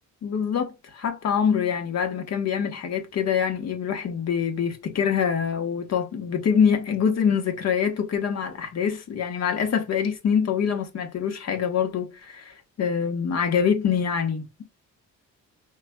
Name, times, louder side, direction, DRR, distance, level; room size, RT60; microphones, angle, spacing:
voice 1, 0.2-14.6, left 7 dB, 55° left, 1.3 m, -25 dB
4.9 x 3.2 x 2.3 m
cardioid pair, 90°, 30 cm